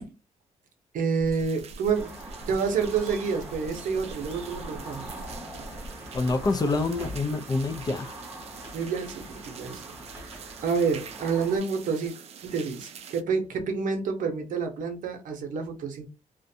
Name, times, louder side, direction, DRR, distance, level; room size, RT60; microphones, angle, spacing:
voice 1, 0.9-2.2 2.5-5.1 8.7-12.1 12.4-16.1, right 5 dB, 70° right, 0.7 m, -29 dB
sound 1, 1.3-6.6, right 1 dB, 90° left, 0.6 m, -43 dB
sound 2, 1.3-13.2, right 7 dB, 50° right, 0.4 m, -46 dB
sound 3, 1.9-11.6, right 1 dB, 10° right, 0.8 m, -43 dB
voice 2, 6.1-8.2, left 3 dB, 30° left, 0.4 m, -26 dB
2.5 x 2.1 x 2.6 m
cardioid pair, 125°, 14 cm